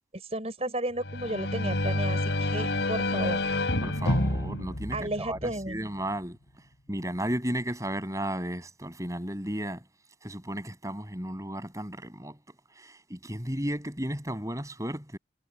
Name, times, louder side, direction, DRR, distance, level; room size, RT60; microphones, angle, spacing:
voice 1, 0.1-3.4 4.9-5.8, right 1 dB, 35° right, 6.1 m, -33 dB
sound 1, 1.0-5.7, left 1 dB, 85° left, 3.6 m, -28 dB
voice 2, 3.8-6.4 6.9-9.9 10.2-12.4 12.7-15.2, right 1 dB, 20° right, 6.5 m, -34 dB
head